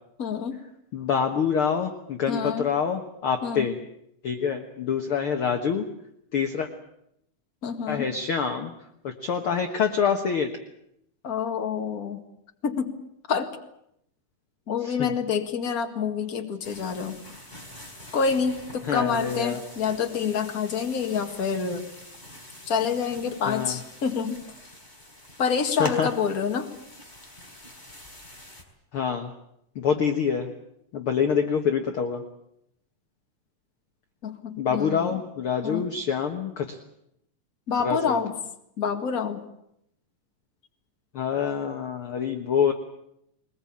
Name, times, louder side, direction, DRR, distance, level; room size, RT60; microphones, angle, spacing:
voice 1, 0.2-0.6 2.3-2.7 3.4-3.8 7.6-8.1 11.2-12.2 12.6-13.0 13.3-13.5 14.7-17.2 18.1-21.9 22.7-24.4 25.4-26.7 34.2-35.2 35.6-35.9 37.7-38.4 38.8-39.4, left 6 dB, 35° left, 5 dB, 1.9 m, -27 dB
voice 2, 0.9-3.7 4.2-5.9 6.3-6.7 7.9-8.7 9.0-10.5 14.8-15.1 18.9-19.6 23.5-23.8 25.8-26.1 28.9-29.3 29.8-30.5 30.9-32.2 34.6-36.8 37.8-38.2 41.2-42.7, left 6 dB, 55° left, 5 dB, 1.8 m, -26 dB
sound 1, 16.6-28.6, left 1 dB, 15° left, 3.7 m, -45 dB
22.0 x 21.0 x 8.6 m, 0.77 s
omnidirectional pair, 3.6 m